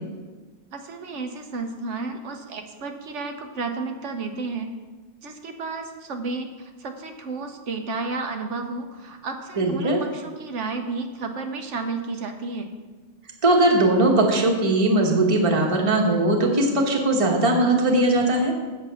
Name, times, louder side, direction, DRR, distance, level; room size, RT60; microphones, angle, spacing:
voice 1, 0.7-4.7 5.2-12.7, right 3 dB, 75° right, 6 dB, 1.2 m, -32 dB
voice 2, 9.6-10.0 13.4-18.5, right 2 dB, 30° right, 1 dB, 1.2 m, -19 dB
7.8 x 7.4 x 5.6 m, 1.3 s
omnidirectional pair, 1.3 m